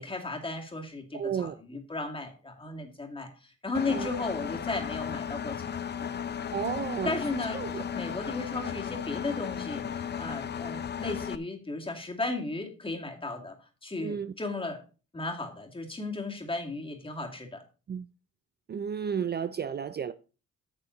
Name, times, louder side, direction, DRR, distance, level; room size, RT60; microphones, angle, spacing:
voice 1, 0.0-6.1 7.0-14.8 15.1-17.6, left 3 dB, 15° left, 2.5 m, -35 dB
voice 2, 1.1-1.6 3.9-4.1 6.5-7.2 7.5-7.8 14.0-14.3 17.9-18.1 18.7-20.1, right 7 dB, 35° right, 0.5 m, -32 dB
Engine, 3.7-11.4, left 8 dB, 35° left, 0.6 m, -35 dB
9.6 x 6.8 x 4.0 m
cardioid pair, 90°, 30 cm